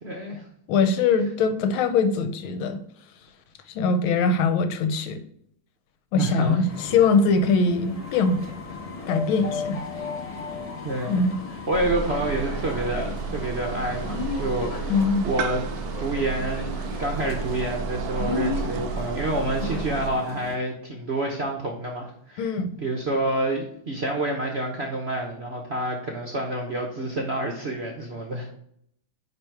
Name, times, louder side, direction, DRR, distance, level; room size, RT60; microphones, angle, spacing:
voice 1, 0.0-0.4 6.1-6.6 10.8-11.3 11.7-15.7 16.0-16.7 17.0-28.5, right 1 dB, 50° right, 1 dB, 0.8 m, -28 dB
voice 2, 0.7-2.8 3.8-5.2 6.1-8.4 9.1-9.8 11.1-11.4 14.9-15.3 22.4-22.7, left 4 dB, 80° left, 10 dB, 1.6 m, -22 dB
sound 1, 6.7-20.6, left 4 dB, 30° left, 0.6 m, -35 dB
sound 2, 11.7-20.1, right 6 dB, 75° right, 0.8 m, -32 dB
10.0 x 3.4 x 4.6 m, 0.68 s
omnidirectional pair, 2.3 m